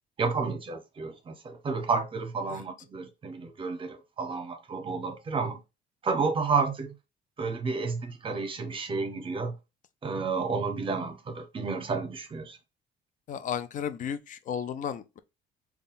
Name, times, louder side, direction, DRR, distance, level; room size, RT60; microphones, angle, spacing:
voice 1, 0.2-5.6 6.0-6.9 7.4-9.6 10.0-12.6, right 4 dB, 30° right, 0.8 m, -31 dB
voice 2, 13.3-15.2, left 8 dB, 50° left, 0.5 m, -34 dB
3.6 x 2.4 x 4.0 m
cardioid pair, 110°, 17 cm